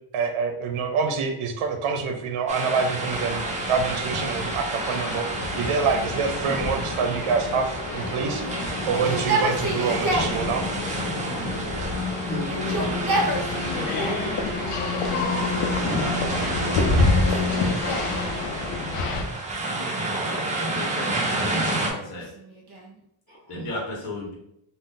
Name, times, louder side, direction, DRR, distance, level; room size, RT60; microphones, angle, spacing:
voice 1, 0.1-3.4 3.7-5.2 5.6-8.4 8.9-10.6, right 5 dB, 75° right, 4 dB, 0.6 m, -26 dB
sound 1, 2.5-21.9, right 2 dB, 15° right, 0.4 m, -30 dB
sound 2, 3.1-19.2, left 3 dB, 90° left, 0.6 m, -28 dB
Yell, 8.0-10.4 11.3-12.0 12.4-14.3 15.0-15.7 16.4-18.2 19.5-20.4 21.2-23.0, right 2 dB, 50° right, 0.9 m, -31 dB
voice 2, 12.0-13.4 15.8-16.0 23.3-23.7, equal, 20° left, -9 dB, 0.8 m, -35 dB
voice 3, 15.2-17.7 20.0-22.3 23.5-24.3, left 2 dB, 50° left, -3 dB, 0.9 m, -36 dB
2.5 x 2.0 x 3.6 m, 0.76 s
wide cardioid pair, 145°, 49 cm